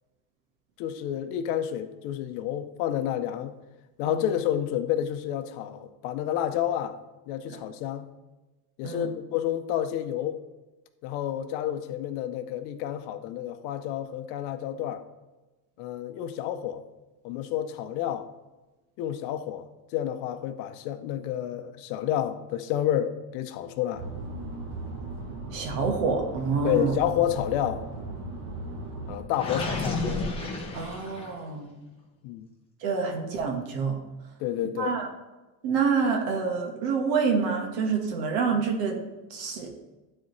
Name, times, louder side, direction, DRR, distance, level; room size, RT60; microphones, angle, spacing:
voice 1, 0.8-3.6 4.0-7.0 7.3-8.1 8.8-10.4 11.0-15.0 15.8-16.8 17.2-18.3 19.0-24.1 26.6-27.9 29.1-30.1 32.2-32.5 34.4-35.0, left 11 dB, 60° left, 9 dB, 0.7 m, -30 dB
sound 1, 23.9-29.2, right 2 dB, 30° right, 1.0 m, -37 dB
voice 2, 25.5-26.9 30.7-31.7 32.8-34.0 34.7-35.1 35.6-39.0 39.3-39.7, right 5 dB, 70° right, 1 dB, 1.5 m, -27 dB
Gurgling, 29.3-31.5, left 3 dB, 10° left, 0.8 m, -31 dB
12.0 x 4.2 x 3.2 m, 1.1 s
cardioid pair, 175°, 50 cm